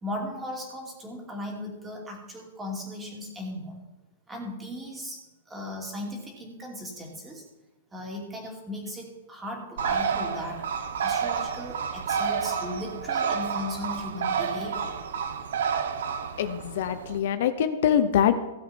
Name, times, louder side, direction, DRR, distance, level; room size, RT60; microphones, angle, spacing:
voice 1, 0.0-3.8 4.3-5.2 5.5-7.4 7.9-10.7 11.0-15.0, left 1 dB, 10° right, 0 dB, 2.6 m, -37 dB
Bird, 9.8-17.2, right 6 dB, 75° right, 1.2 m, -30 dB
voice 2, 16.4-18.4, left 9 dB, 60° left, 10 dB, 0.8 m, -24 dB
16.5 x 7.5 x 4.4 m, 1.0 s
hypercardioid pair, 160°, 0 cm